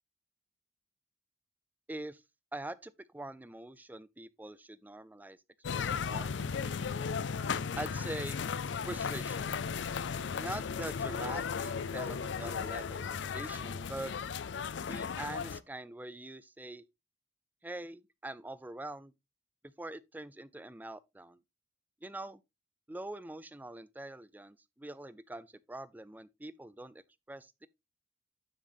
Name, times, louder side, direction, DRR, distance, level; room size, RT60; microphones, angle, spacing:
voice 1, 1.9-2.2 2.5-5.4 5.7-6.3 7.8-8.4 8.9-9.5 10.3-14.1 14.9-16.8 17.6-19.1 19.8-21.4 22.0-22.4 22.9-27.7, right 1 dB, 10° right, 0.4 m, -44 dB
sound 1, 5.6-15.6, left 6 dB, 75° left, 0.5 m, -36 dB
9.3 x 7.7 x 2.5 m
head